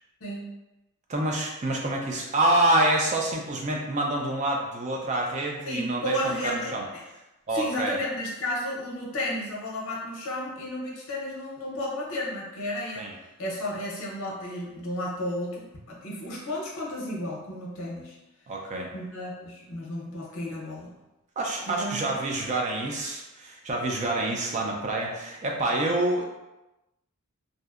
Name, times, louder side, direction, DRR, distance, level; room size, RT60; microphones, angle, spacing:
voice 1, 0.2-0.5 5.6-7.0 7.5-13.1 13.4-18.2 18.9-20.9 21.7-22.2, left 1 dB, 65° left, -3 dB, 0.6 m, -33 dB
voice 2, 1.1-6.8 7.5-8.0 13.0-13.1 18.5-18.9 21.4-26.2, right 1 dB, 30° right, 0 dB, 0.3 m, -27 dB
2.6 x 2.1 x 2.3 m, 0.98 s
head